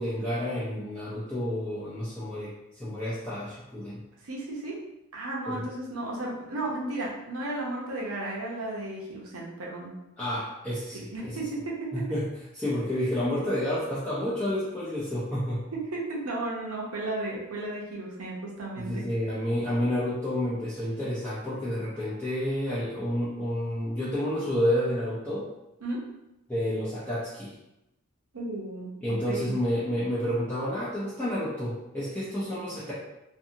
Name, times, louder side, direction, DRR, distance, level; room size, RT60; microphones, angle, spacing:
voice 1, 0.0-4.0 5.5-5.6 10.2-11.4 11.9-12.3 12.5-15.6 18.8-25.5 26.5-27.5 29.0-32.9, equal, 5° left, -11 dB, 0.5 m, -30 dB
voice 2, 4.2-4.8 5.1-9.9 11.1-11.8 15.7-19.0 25.8-26.0 28.3-29.6, right 2 dB, 75° right, -3 dB, 0.8 m, -34 dB
2.6 x 2.6 x 2.7 m, 0.92 s
head